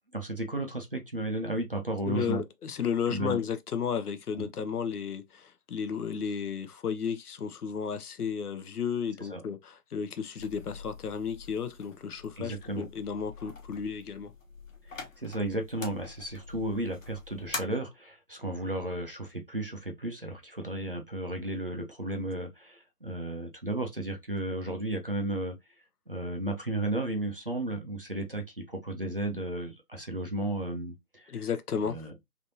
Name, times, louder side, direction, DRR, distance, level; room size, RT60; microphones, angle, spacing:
voice 1, 0.1-2.4 3.1-3.4 4.4-4.5 9.2-9.4 12.4-12.9 14.9-25.6 26.1-31.3 31.8-32.1, right 1 dB, 40° right, 0.5 m, -34 dB
voice 2, 2.1-14.3 31.3-32.1, left 7 dB, 70° left, 0.7 m, -33 dB
sound 1, 10.4-17.6, left 4 dB, 55° left, 1.1 m, -45 dB
3.4 x 2.8 x 2.6 m
hypercardioid pair, 170°, 47 cm